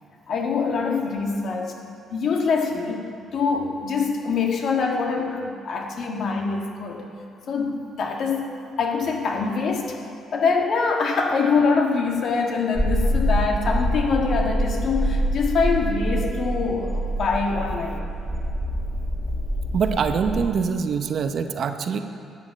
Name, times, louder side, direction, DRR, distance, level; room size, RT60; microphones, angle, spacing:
voice 1, 0.3-1.8 2.1-7.1 7.5-10.0 10.3-18.0, left 4 dB, 65° left, 1 dB, 1.6 m, -24 dB
sound 1, 12.8-20.5, equal, 5° right, 1.8 m, -25 dB
voice 2, 19.7-22.0, right 6 dB, 60° right, 8 dB, 0.7 m, -24 dB
12.0 x 7.7 x 6.2 m, 2.6 s
supercardioid pair, 65°, 0 cm